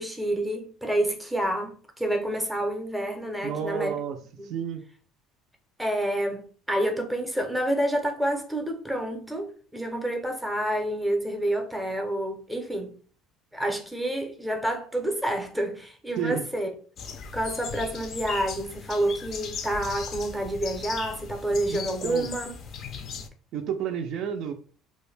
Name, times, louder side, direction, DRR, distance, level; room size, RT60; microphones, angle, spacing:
voice 1, 0.0-4.0 4.4-4.6 5.8-12.9 13.5-16.7 17.3-22.5, right 1 dB, ahead, 0.6 m, -28 dB
voice 2, 3.4-4.2 4.4-4.8 16.2-16.5 21.7-22.3 23.5-24.5, right 8 dB, 60° right, 0.3 m, -31 dB
sound 1, 17.0-23.3, left 5 dB, 45° left, 0.4 m, -38 dB
2.4 x 2.1 x 3.2 m
cardioid pair, 130°, 0 cm